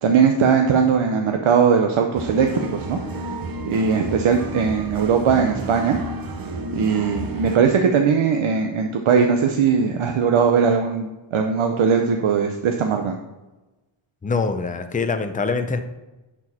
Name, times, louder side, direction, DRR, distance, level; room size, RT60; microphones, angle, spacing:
voice 1, 0.0-3.0 3.7-6.0 6.7-13.2, right 6 dB, 80° right, 4 dB, 0.8 m, -19 dB
sound 1, 2.2-7.6, right 2 dB, 45° right, 0.8 m, -31 dB
voice 2, 14.2-15.8, left 4 dB, 15° left, 7 dB, 0.5 m, -24 dB
10.5 x 4.6 x 4.2 m, 1.1 s
wide cardioid pair, 170°, 49 cm